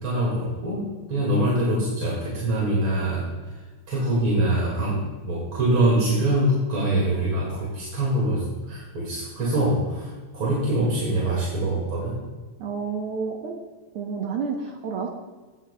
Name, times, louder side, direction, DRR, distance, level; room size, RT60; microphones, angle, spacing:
voice 1, 0.0-3.3 3.9-12.2, right 1 dB, 45° right, -4 dB, 2.6 m, -24 dB
voice 2, 12.6-13.5 13.9-15.1, right 5 dB, 65° right, 2 dB, 1.4 m, -30 dB
16.5 x 10.0 x 2.2 m, 1.3 s
omnidirectional pair, 3.4 m